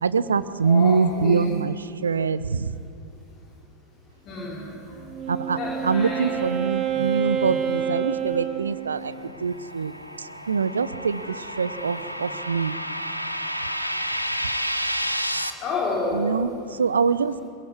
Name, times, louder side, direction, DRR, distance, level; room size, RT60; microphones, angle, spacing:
voice 1, 0.0-2.8 5.3-12.8 16.1-17.4, right 5 dB, 70° right, 15 dB, 1.0 m, -24 dB
voice 2, 0.6-1.5 4.3-4.7 5.6-6.2 6.9-7.0 15.6-16.4, left 3 dB, 35° left, -3 dB, 4.7 m, -29 dB
Wind instrument woodwind instrument, 5.0-9.3, right 9 dB, 30° right, 1.9 m, -28 dB
sound 1, 8.7-15.5, equal, 90° left, 1.4 m, -31 dB
25.5 x 22.0 x 9.7 m, 2.6 s
figure-of-eight pair, 90°, 0 cm